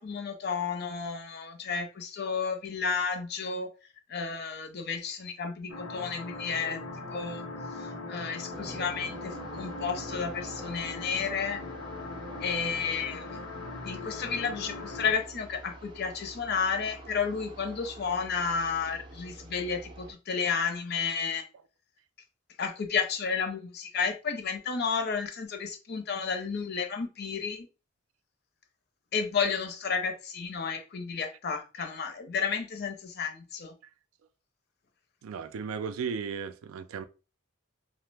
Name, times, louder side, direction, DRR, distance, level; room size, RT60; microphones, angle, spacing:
voice 1, 0.0-3.7 4.1-6.8 7.1-7.5 7.7-11.6 12.4-13.4 13.8-21.4 22.6-27.7 29.1-33.7, left 5 dB, 50° left, 0.5 m, -32 dB
sound 1, 5.7-15.1, left 3 dB, 90° left, 0.7 m, -40 dB
sound 2, 8.5-20.1, right 2 dB, 25° right, 0.5 m, -46 dB
voice 2, 35.2-37.0, right 6 dB, 90° right, 0.3 m, -35 dB
2.8 x 2.0 x 3.3 m
head